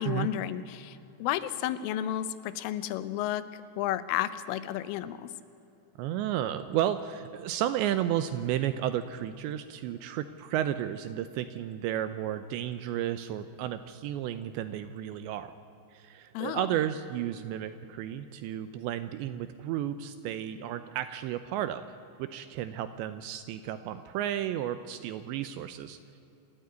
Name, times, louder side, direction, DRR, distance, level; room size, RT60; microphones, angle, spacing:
voice 1, 0.0-5.3 16.3-16.7, left 12 dB, 85° left, 14 dB, 3.4 m, -32 dB
voice 2, 6.0-15.5 15.9-21.8 22.2-26.0, right 11 dB, 80° right, 11 dB, 2.7 m, -32 dB
27.0 x 13.5 x 9.4 m, 2.9 s
omnidirectional pair, 5.6 m